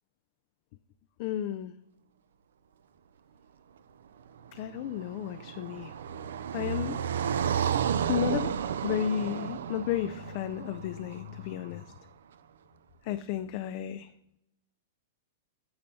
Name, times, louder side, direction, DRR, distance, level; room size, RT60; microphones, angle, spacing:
voice 1, 1.2-1.7 4.5-5.9 6.5-7.0 8.1-8.5 8.8-11.8 13.0-14.1, left 11 dB, 50° left, 11 dB, 0.3 m, -33 dB
Car passing by, 4.5-11.7, right 8 dB, 80° right, 0.4 m, -32 dB
8.6 x 4.3 x 4.0 m, 0.84 s
hypercardioid pair, 125°, 0 cm